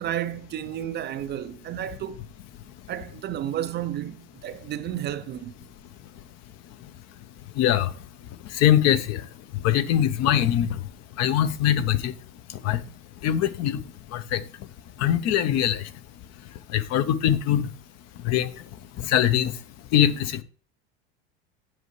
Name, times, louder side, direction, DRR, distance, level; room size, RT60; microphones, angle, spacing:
voice 1, 0.0-2.2 2.9-5.5, right 11 dB, 30° right, 0.4 m, -32 dB
voice 2, 7.6-7.9 8.6-9.2 9.6-10.7 11.2-12.1 12.6-12.8 13.2-13.8 14.1-14.4 15.0-15.8 16.7-17.7 18.2-18.5 19.1-19.5 19.9-20.4, left 11 dB, 50° left, 0.7 m, -22 dB
7.8 x 5.3 x 3.1 m
supercardioid pair, 100°, 34 cm